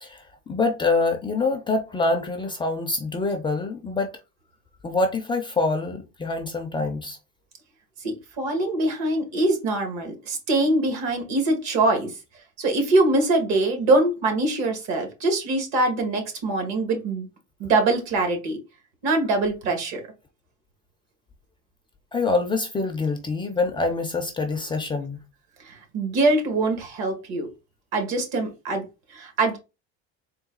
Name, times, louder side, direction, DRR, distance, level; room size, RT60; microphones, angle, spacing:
voice 1, 0.0-4.1 4.8-7.2 22.1-25.2, left 3 dB, 15° left, 0.4 m, -25 dB
voice 2, 8.0-12.1 12.6-17.3 17.6-18.6 19.0-20.0 25.6-27.5 27.9-29.6, right 2 dB, 60° right, 1.6 m, -23 dB
3.9 x 2.3 x 3.7 m
supercardioid pair, 130°, 31 cm